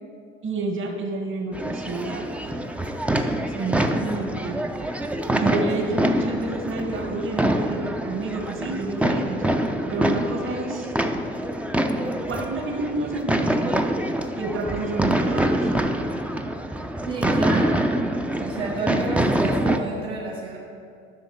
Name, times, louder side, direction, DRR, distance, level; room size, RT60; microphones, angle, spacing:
voice 1, 0.4-2.3 3.5-4.6 5.3-9.4 9.9-10.9 12.0-14.0 14.3-15.7 17.4-17.7, right 2 dB, 45° right, 2 dB, 1.5 m, -29 dB
sound 1, 1.5-19.8, right 1 dB, 5° right, 0.5 m, -25 dB
voice 2, 5.3-5.6 5.9-6.0 17.1-17.9 18.4-20.6, right 3 dB, 70° right, -7 dB, 1.7 m, -30 dB
10.5 x 6.2 x 4.5 m, 2.3 s
hypercardioid pair, 75°, 30 cm